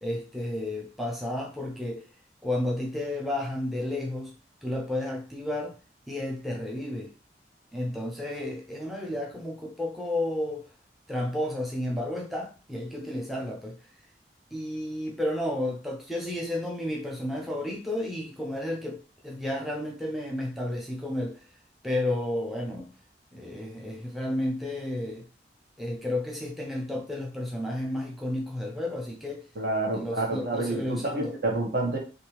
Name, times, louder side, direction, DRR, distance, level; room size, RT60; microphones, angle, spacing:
voice 1, 0.0-2.0 2.4-4.3 4.6-5.8 6.1-7.1 7.7-10.6 11.1-13.8 14.5-21.4 21.8-22.9 23.3-25.2 25.8-29.4 29.9-31.3, left 1 dB, ahead, 0.5 m, -32 dB
voice 2, 29.5-32.0, right 2 dB, 60° right, 1.1 m, -28 dB
3.4 x 2.6 x 2.9 m
head